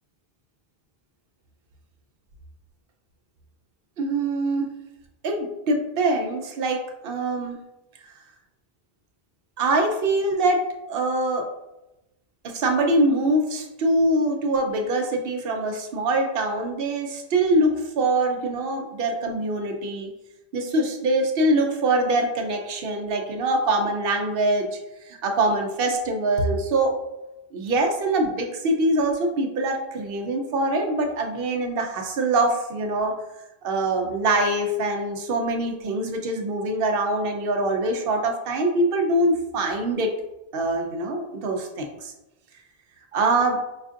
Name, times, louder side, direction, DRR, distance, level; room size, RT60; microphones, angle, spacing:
voice 1, 4.0-4.7 5.2-7.6 9.6-11.5 12.4-20.1 20.5-24.8 25.1-26.9 27.5-33.1 33.6-40.1 40.5-42.1 43.1-43.6, right 2 dB, 70° right, 3 dB, 0.8 m, -24 dB
5.0 x 2.5 x 2.4 m, 0.94 s
omnidirectional pair, 1.0 m